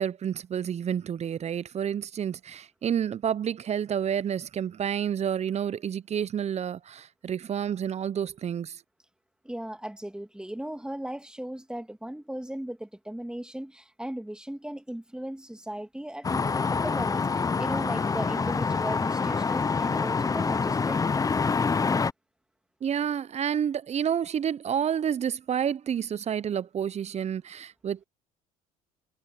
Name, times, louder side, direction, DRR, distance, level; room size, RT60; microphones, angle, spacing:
voice 1, 0.0-8.8 22.8-28.0, right 8 dB, 40° right, 0.9 m, -29 dB
voice 2, 9.4-21.2, right 1 dB, 5° right, 2.5 m, -37 dB
sound 1, 16.2-22.1, left 4 dB, 20° left, 0.6 m, -26 dB
hypercardioid pair, 65°, 18 cm